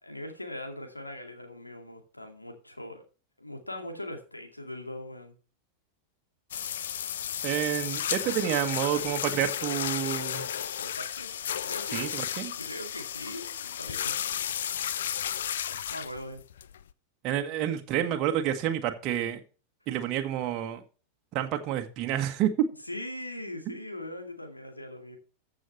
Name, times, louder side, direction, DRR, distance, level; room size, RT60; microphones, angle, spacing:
voice 1, 0.0-3.0 3.4-5.3 10.8-14.2 15.9-16.4 22.9-25.2, left 1 dB, 85° left, 2.3 m, -41 dB
sound 1, 6.5-16.9, left 9 dB, 60° left, 0.6 m, -33 dB
voice 2, 7.4-10.5 11.9-12.5 17.2-19.4 19.9-20.8 21.3-22.7, right 11 dB, 35° right, 1.5 m, -29 dB
14.5 x 6.4 x 3.3 m
figure-of-eight pair, 90°, 0 cm